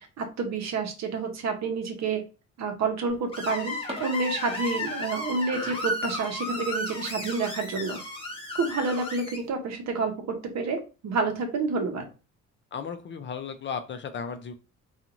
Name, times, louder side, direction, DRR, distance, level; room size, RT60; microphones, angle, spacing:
voice 1, 0.2-2.2 2.6-8.0 8.5-12.1, right 4 dB, 60° right, 4 dB, 0.8 m, -29 dB
Screech, 3.3-9.4, left 1 dB, 20° left, 0.9 m, -34 dB
sound 1, 3.8-5.7 6.0-6.1 6.6-6.8 7.2-7.3 7.6-7.7 8.4-8.7, right 2 dB, 20° right, 0.8 m, -44 dB
voice 2, 12.7-14.5, left 6 dB, 40° left, 8 dB, 0.4 m, -35 dB
2.6 x 2.4 x 2.9 m, 0.32 s
cardioid pair, 90°, 30 cm